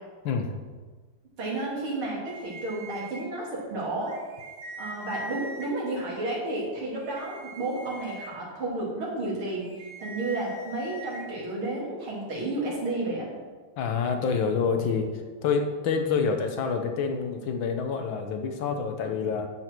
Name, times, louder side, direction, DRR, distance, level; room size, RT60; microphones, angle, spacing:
voice 1, 0.3-0.6 13.8-19.5, left 5 dB, 70° left, 5 dB, 1.6 m, -27 dB
voice 2, 1.4-4.1 4.8-9.7 10.0-13.3, right 2 dB, 85° right, -4 dB, 3.6 m, -31 dB
sound 1, 2.3-3.2 4.0-5.7 7.0-8.3 9.6-11.2, right 1 dB, 50° right, 1.9 m, -42 dB
10.0 x 8.3 x 4.5 m, 1.4 s
omnidirectional pair, 2.3 m